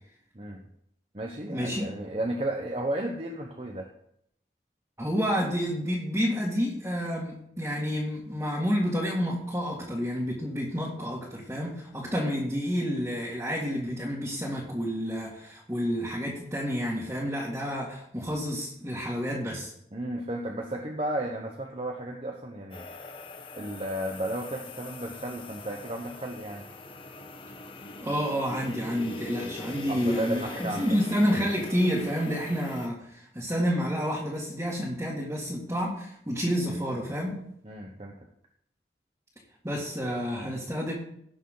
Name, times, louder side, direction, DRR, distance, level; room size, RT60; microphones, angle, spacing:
voice 1, 0.3-0.7 1.1-3.9 19.9-22.9 23.5-26.7 29.9-30.9 37.6-38.2, right 1 dB, 35° right, 1 dB, 0.9 m, -33 dB
voice 2, 1.5-1.8 5.0-19.7 28.0-37.4 39.6-40.9, equal, 15° right, -7 dB, 2.1 m, -29 dB
sound 1, 22.7-32.9, left 2 dB, 30° left, 0.9 m, -42 dB
17.5 x 6.5 x 3.9 m, 0.72 s
head